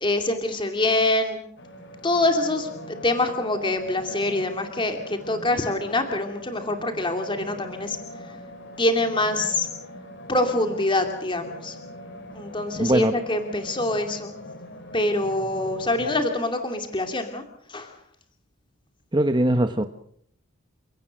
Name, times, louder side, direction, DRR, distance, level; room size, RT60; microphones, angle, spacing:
voice 1, 0.0-1.4 2.0-8.0 8.8-9.7 10.3-11.7 12.3-14.3 14.9-17.4 17.7-17.9, left 2 dB, 20° left, 5 dB, 2.5 m, -25 dB
sound 1, 1.6-16.2, left 1 dB, 55° left, 3.3 m, -41 dB
voice 2, 12.8-13.1 19.1-19.9, right 1 dB, 20° right, 8 dB, 1.0 m, -21 dB
29.0 x 17.5 x 6.5 m, 0.65 s
head